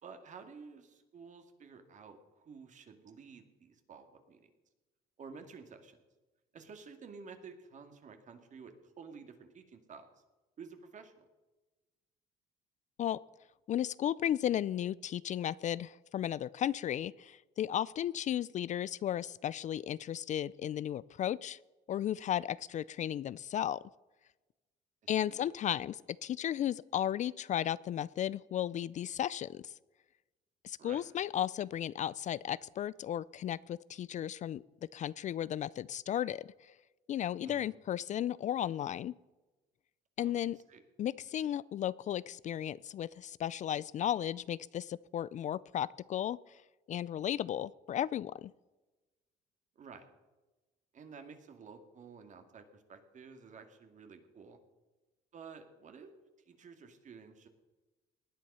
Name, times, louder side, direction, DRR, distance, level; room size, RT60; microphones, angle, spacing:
voice 1, 0.0-4.5 5.2-6.0 6.5-10.1 10.6-11.3 25.3-25.5 30.8-31.0 37.4-37.7 40.2-40.8 49.8-50.1 50.9-54.6 55.3-56.1 56.5-57.5, right 5 dB, 45° right, 7 dB, 2.3 m, -52 dB
voice 2, 13.7-21.6 21.9-23.8 25.1-29.7 30.6-34.6 34.9-36.7 37.1-39.1 40.2-40.6 41.0-46.6 46.9-48.5, left 10 dB, 45° left, 20 dB, 0.4 m, -35 dB
18.5 x 10.5 x 5.6 m, 1.1 s
cardioid pair, 110°, 17 cm